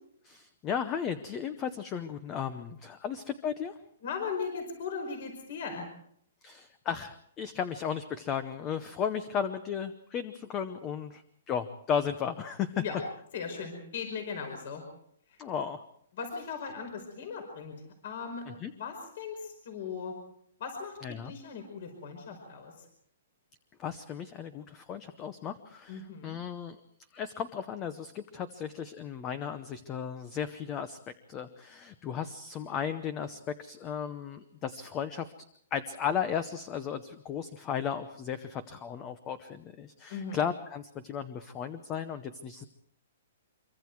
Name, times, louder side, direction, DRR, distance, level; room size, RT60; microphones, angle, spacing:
voice 1, 0.2-3.7 6.4-12.8 15.4-15.8 18.5-18.7 21.0-21.3 23.8-26.8 27.1-31.0 31.3-35.3 35.7-42.6, left 8 dB, 15° left, 11 dB, 0.8 m, -35 dB
voice 2, 4.0-5.9 12.7-13.0 13.3-14.8 15.3-15.4 16.1-17.7 18.0-20.1 20.6-22.8 25.9-26.4 40.1-40.4, left 5 dB, 45° left, 5 dB, 5.0 m, -38 dB
26.0 x 24.0 x 4.7 m, 0.67 s
hypercardioid pair, 175°, 0 cm